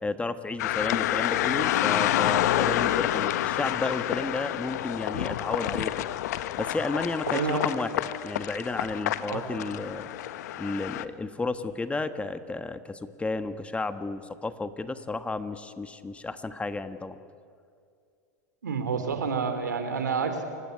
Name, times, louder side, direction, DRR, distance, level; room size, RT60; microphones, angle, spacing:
voice 1, 0.0-6.1 6.6-7.9 8.2-10.1 10.6-17.2, left 3 dB, 15° left, 11 dB, 1.3 m, -32 dB
sound 1, 0.6-11.0, left 13 dB, 70° left, 1.0 m, -28 dB
voice 2, 7.3-7.7 9.2-9.7 18.6-20.4, right 5 dB, 90° right, 7 dB, 3.1 m, -29 dB
29.0 x 16.5 x 9.6 m, 2.3 s
hypercardioid pair, 95°, 9 cm